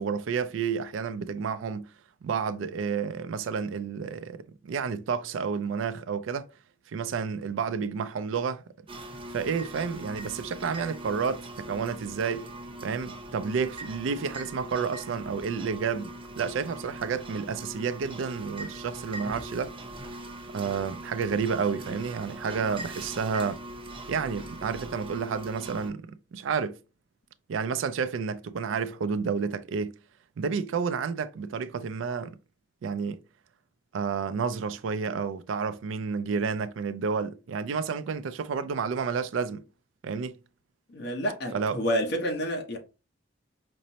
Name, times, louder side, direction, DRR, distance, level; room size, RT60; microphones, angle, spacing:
voice 1, 0.0-1.9 2.2-6.5 6.9-8.6 9.3-12.5 12.8-19.7 20.5-23.6 24.1-26.8 27.5-30.0 30.4-32.4 32.8-33.2 33.9-39.7 40.0-40.4 41.5-41.8, right 5 dB, 85° right, 0.4 m, -30 dB
sound 1, 8.9-25.9, right 1 dB, 30° right, 0.7 m, -41 dB
voice 2, 40.9-42.8, equal, 65° left, 1.0 m, -29 dB
5.2 x 2.0 x 2.7 m
head